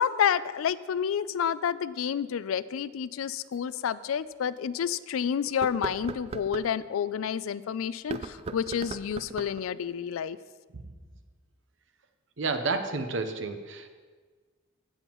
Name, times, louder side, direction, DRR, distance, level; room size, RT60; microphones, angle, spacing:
voice 1, 0.0-10.4, left 8 dB, 85° left, 16 dB, 0.4 m, -29 dB
sound 1, 3.5-3.6 4.2-4.3 5.5-6.7 8.0-9.6, right 3 dB, 30° right, 0.3 m, -38 dB
voice 2, 12.4-13.9, right 3 dB, 65° right, 8 dB, 0.8 m, -30 dB
16.0 x 7.2 x 3.0 m, 1.4 s
head